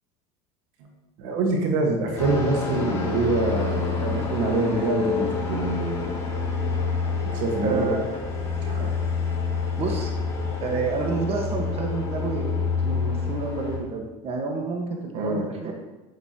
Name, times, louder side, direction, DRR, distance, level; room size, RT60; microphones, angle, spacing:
voice 1, 1.2-6.1 7.2-7.9 8.6-8.9 15.1-15.5, right 3 dB, 75° right, 2 dB, 1.6 m, -25 dB
sound 1, 2.2-13.8, left 5 dB, 20° left, 2.8 m, -28 dB
voice 2, 7.6-8.0 9.8-10.1 10.6-15.7, right 4 dB, 40° right, 1 dB, 1.5 m, -29 dB
8.4 x 8.2 x 3.0 m, 1.1 s
supercardioid pair, 95°, 16 cm